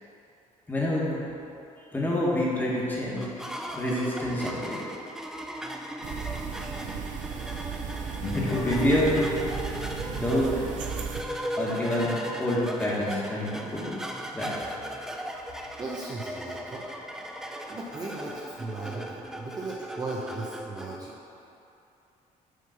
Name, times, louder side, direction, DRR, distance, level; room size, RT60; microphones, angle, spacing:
voice 1, 0.7-1.2 1.9-3.2 3.7-4.8 8.2-9.4 10.1-10.5 11.5-12.1 12.4-13.9 14.3-14.6, left 1 dB, 15° left, -6 dB, 1.5 m, -27 dB
sound 1, 3.2-21.0, equal, 5° right, 0.4 m, -38 dB
sound 2, 6.0-11.2, right 7 dB, 60° right, 0.5 m, -36 dB
Guitar, 8.2-13.3, left 2 dB, 65° left, 1.1 m, -37 dB
voice 2, 15.8-16.9 17.7-21.2, right 2 dB, 25° right, -4 dB, 0.7 m, -37 dB
6.3 x 3.9 x 5.7 m, 2.8 s
cardioid pair, 130°, 14 cm